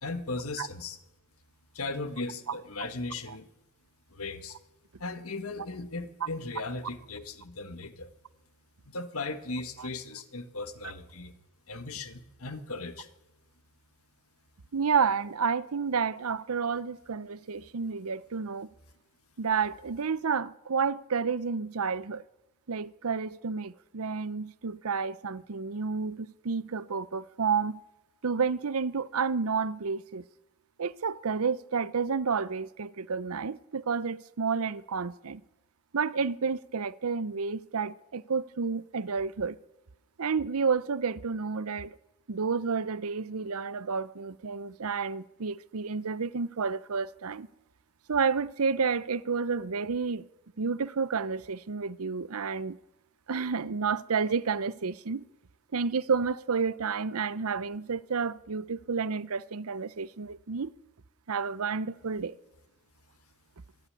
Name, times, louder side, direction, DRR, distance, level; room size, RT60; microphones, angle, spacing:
voice 1, 0.0-1.0 1.7-3.5 4.1-4.6 5.0-8.1 8.8-11.3 11.7-13.1, left 3 dB, 75° left, 1.6 m, -37 dB
voice 2, 14.7-18.7 19.4-22.2 22.7-27.8 28.2-30.2 30.8-35.4 35.9-39.6 40.2-42.0 42.3-47.5 48.1-50.3 50.6-52.8 53.3-55.3 55.7-60.7 61.3-62.4, right 5 dB, 80° right, 0.7 m, -30 dB
25.0 x 11.0 x 9.9 m
head